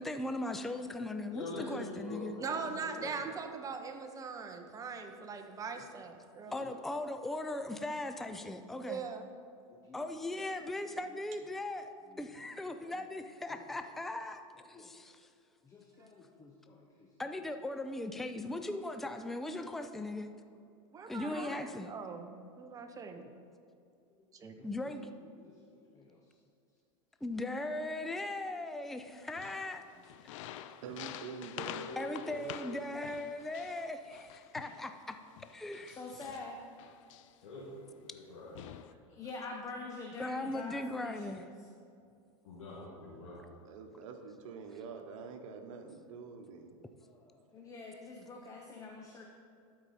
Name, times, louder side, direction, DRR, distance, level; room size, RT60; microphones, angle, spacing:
voice 1, 0.0-2.4 6.5-9.0 9.9-14.4 14.8-15.1 17.2-20.3 21.1-21.9 24.6-25.0 27.2-29.8 32.0-35.2 35.5-36.0 40.2-41.5, left 2 dB, ahead, 8 dB, 0.3 m, -38 dB
voice 2, 1.3-3.3 6.5-6.6 37.4-38.5 39.1-39.2 42.4-43.4, left 2 dB, 85° left, -7 dB, 1.9 m, -44 dB
voice 3, 2.4-6.6 8.8-9.3 12.9-13.0 20.9-23.2 24.3-24.6, right 5 dB, 20° right, 5 dB, 0.7 m, -41 dB
voice 4, 3.7-4.2 4.7-4.9 5.8-5.9 6.6-6.7 8.7-8.8 9.7-11.2 12.0-13.1 13.5-14.1 14.5-15.0 15.6-17.1 17.3-17.4 21.3-21.6 23.2-23.3 24.1-26.4 30.6-30.8 32.5-32.6 35.8-36.7 39.2-41.7 47.0-49.2, left 3 dB, 20° left, 1 dB, 0.7 m, -49 dB
sound 1, 29.3-34.9 35.4-37.5 38.1-38.2 38.5-38.9, left 12 dB, 70° left, 0.4 m, -48 dB
voice 5, 30.8-32.9 43.6-46.8, right 5 dB, 75° right, 5 dB, 1.0 m, -46 dB
12.0 x 4.7 x 4.2 m, 2.4 s
supercardioid pair, 125°, 17 cm